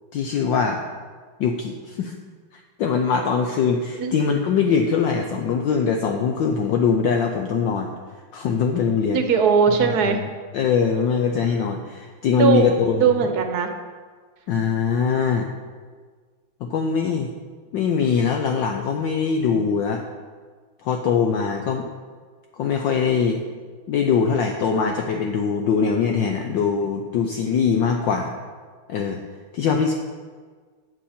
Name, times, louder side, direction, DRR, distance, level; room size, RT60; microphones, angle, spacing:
voice 1, 0.1-0.8 1.4-2.1 2.8-7.9 8.3-9.2 9.9-10.1 10.5-13.1 14.5-15.5 16.6-17.3 17.7-20.0 20.8-21.9 22.6-23.4 23.9-28.3 28.9-29.2 29.5-29.9, left 6 dB, 70° left, 4 dB, 1.3 m, -22 dB
voice 2, 9.1-10.2 12.4-12.6 13.0-13.7, right 6 dB, 60° right, 6 dB, 1.2 m, -19 dB
12.5 x 7.6 x 4.3 m, 1.5 s
omnidirectional pair, 2.4 m